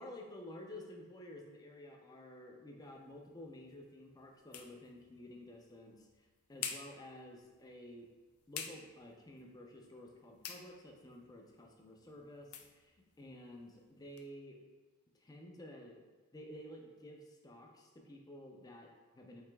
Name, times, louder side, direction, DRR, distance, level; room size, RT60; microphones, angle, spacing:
voice 1, 0.0-8.1 8.5-14.6 15.1-16.0 16.3-19.4, left 1 dB, 15° left, 1 dB, 0.4 m, -52 dB
sound 1, 2.8-14.3, left 7 dB, 90° left, 0.4 m, -51 dB
4.7 x 3.3 x 2.2 m, 1.3 s
head